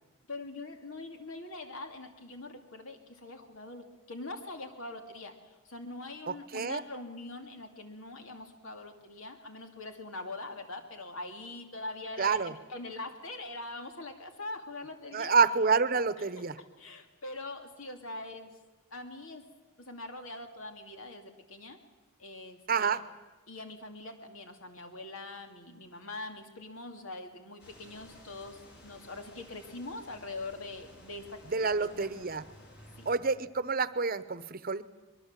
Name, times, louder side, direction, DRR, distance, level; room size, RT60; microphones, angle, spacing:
voice 1, 0.3-15.3 16.8-18.6 18.9-19.4 19.8-21.8 22.2-23.0 23.5-32.3 33.0-33.1, left 2 dB, 75° left, 5 dB, 2.7 m, -43 dB
voice 2, 6.3-6.8 12.2-12.5 15.1-16.6 22.7-23.0 31.5-32.4 33.1-34.8, right 5 dB, 45° right, 14 dB, 0.9 m, -28 dB
sound 1, 27.6-33.1, equal, 50° left, 6.9 m, -55 dB
24.0 x 22.5 x 7.5 m, 1.3 s
head